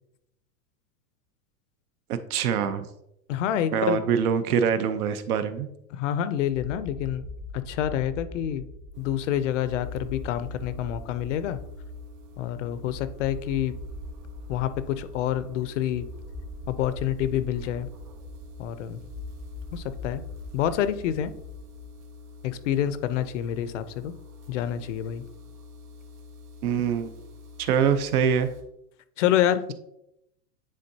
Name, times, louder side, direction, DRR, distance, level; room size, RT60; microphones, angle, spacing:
voice 1, 2.1-2.9 3.7-5.7 26.6-27.1 27.6-28.5, right 7 dB, 70° right, 10 dB, 0.8 m, -24 dB
voice 2, 3.3-4.0 5.9-7.3 7.7-8.7 9.0-11.6 12.4-13.7 14.5-16.1 16.7-17.9 18.6-19.0 19.7-20.2 20.5-21.3 22.4-24.1 24.5-25.2 29.2-29.7, left 11 dB, 55° left, 13 dB, 0.5 m, -27 dB
sound 1, 6.5-22.0, left 1 dB, 10° right, 0.4 m, -42 dB
sound 2, 8.9-28.6, left 4 dB, 85° right, 1.4 m, -47 dB
9.7 x 3.8 x 2.7 m, 0.81 s
supercardioid pair, 155°, 46 cm